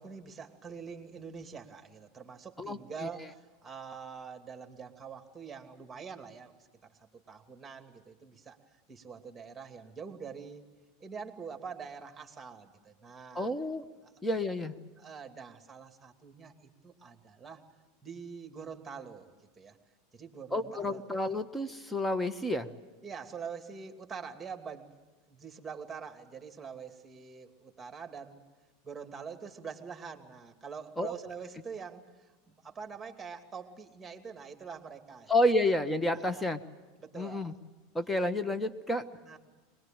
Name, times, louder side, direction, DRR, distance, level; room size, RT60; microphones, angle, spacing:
voice 1, 0.0-6.5 6.8-8.6 8.9-10.7 11.0-13.5 15.0-17.6 18.0-19.8 20.1-21.0 23.0-24.9 25.3-28.4 28.8-35.3 36.1-36.5 37.0-37.5 39.2-39.4, right 6 dB, 20° right, 5 dB, 2.7 m, -45 dB
voice 2, 2.6-3.1 13.3-13.8 14.2-14.7 20.5-22.7 31.0-31.1 35.3-36.6 37.1-37.5 37.9-39.1, left 1 dB, 10° left, 10 dB, 1.5 m, -30 dB
22.0 x 21.0 x 9.1 m, 1.2 s
hypercardioid pair, 100°, 0 cm